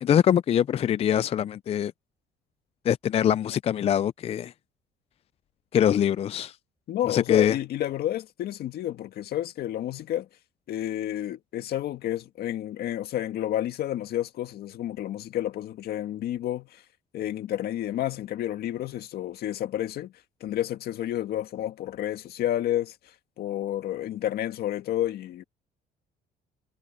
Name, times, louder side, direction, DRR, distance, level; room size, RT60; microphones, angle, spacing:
voice 1, 0.0-1.9 2.8-4.5 5.7-6.6 7.1-7.6, left 9 dB, 35° left, 0.3 m, -23 dB
voice 2, 6.9-10.3 10.7-16.8 17.1-20.1 20.4-22.9 23.4-25.4, left 12 dB, 65° left, 1.9 m, -30 dB
cardioid pair, 110°, 17 cm